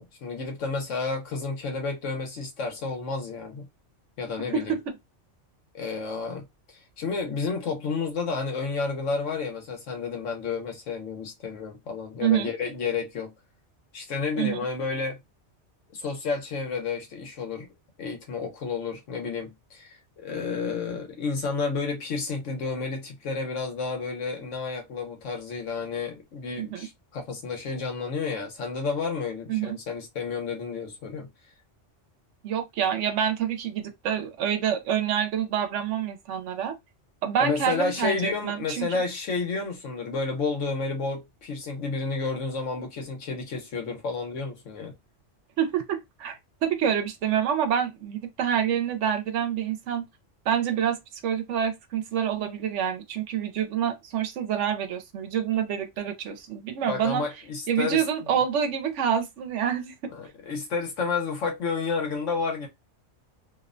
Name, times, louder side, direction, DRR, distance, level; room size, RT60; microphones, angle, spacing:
voice 1, 0.0-3.7 4.2-4.8 5.7-13.3 13.9-15.2 15.9-17.7 18.0-31.3 37.4-44.9 56.8-58.0 60.1-62.7, left 4 dB, 85° left, 1.2 m, -31 dB
voice 2, 12.2-12.5 14.4-14.7 26.6-26.9 29.5-29.8 32.4-36.7 37.2-39.0 45.6-50.1 50.5-51.0 51.2-57.2 57.7-60.1, right 8 dB, 80° right, 0.9 m, -27 dB
2.7 x 2.1 x 2.4 m
omnidirectional pair, 1.2 m